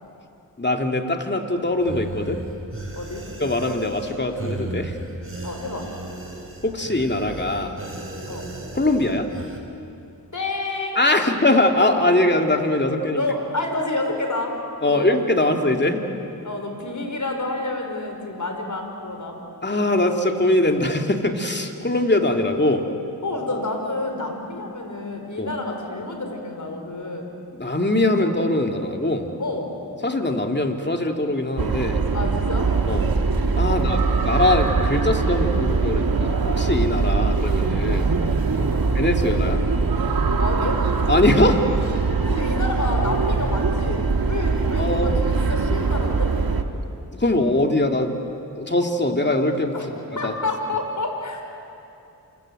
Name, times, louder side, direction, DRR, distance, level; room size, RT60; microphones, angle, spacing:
voice 1, 0.6-2.4 3.4-5.0 6.6-7.7 8.7-9.3 11.0-13.2 14.8-16.0 19.6-22.9 25.4-25.5 27.6-29.3 30.0-32.0 32.9-33.1 33.5-38.1 38.9-39.6 41.1-41.6 44.8-45.1 47.2-48.1 48.6-49.8 50.2-50.3, left 1 dB, 25° left, 4 dB, 2.7 m, -22 dB
sound 1, 1.8-9.6, right 2 dB, 35° right, 4.6 m, -35 dB
voice 2, 5.4-5.9 8.3-8.5 10.3-11.0 13.1-14.6 14.9-15.5 16.4-19.4 23.2-27.3 29.4-29.7 32.1-32.7 33.6-34.0 38.5-38.9 40.4-40.8 42.3-46.3 49.7-49.9 50.2-51.4, left 2 dB, 50° left, 3 dB, 5.2 m, -29 dB
sound 2, 31.6-46.6, right 4 dB, 60° right, 1.8 m, -22 dB
28.5 x 25.0 x 7.9 m, 2.7 s
cardioid pair, 50°, 39 cm